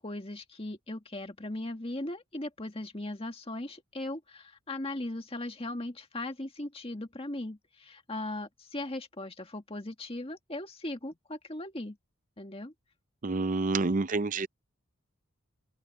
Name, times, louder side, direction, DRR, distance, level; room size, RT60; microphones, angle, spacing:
voice 1, 0.0-12.0 12.4-12.7, left 1 dB, 25° left, 1.9 m, -38 dB
voice 2, 13.2-14.5, right 3 dB, 35° right, 0.5 m, -28 dB
open air
head